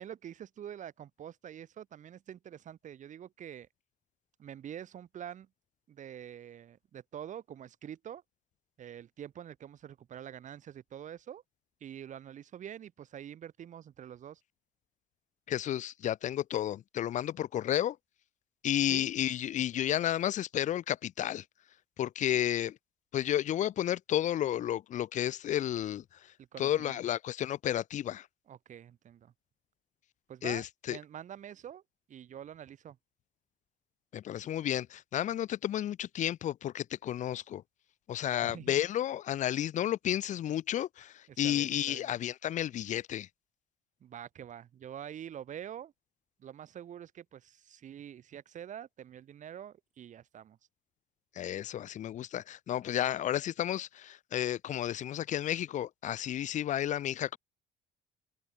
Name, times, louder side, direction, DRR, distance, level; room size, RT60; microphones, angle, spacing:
voice 1, 0.0-3.7 4.4-5.5 5.9-8.2 8.8-11.4 11.8-14.4 18.8-19.1 26.4-27.0 28.5-29.3 30.3-31.8 32.1-33.0 38.4-38.8 41.3-42.1 44.0-45.9 46.4-50.6, right 9 dB, 45° right, 1.1 m, -46 dB
voice 2, 15.5-18.0 18.6-21.4 22.0-22.8 23.1-26.0 26.6-28.3 30.4-31.0 34.1-37.6 38.1-43.3 51.4-57.4, left 11 dB, 45° left, 0.5 m, -32 dB
cardioid pair, 110°, 17 cm